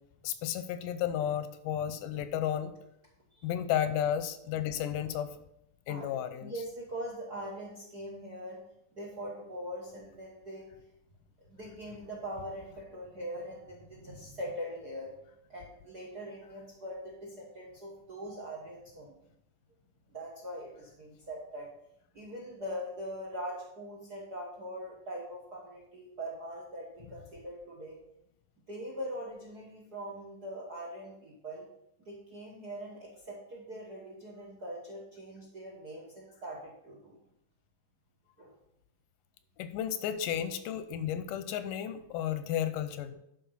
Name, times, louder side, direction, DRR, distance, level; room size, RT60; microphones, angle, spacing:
voice 1, 0.2-2.7 3.4-5.3 5.9-6.5 39.6-43.1, left 10 dB, 85° left, 10 dB, 2.2 m, -33 dB
voice 2, 5.9-8.6 8.9-10.7 11.4-15.1 15.5-19.2 20.1-21.7 22.1-28.0 28.7-31.7 32.0-37.2 38.4-38.6, equal, 50° right, -1 dB, 1.2 m, -42 dB
11.5 x 4.5 x 5.5 m, 0.77 s
omnidirectional pair, 3.8 m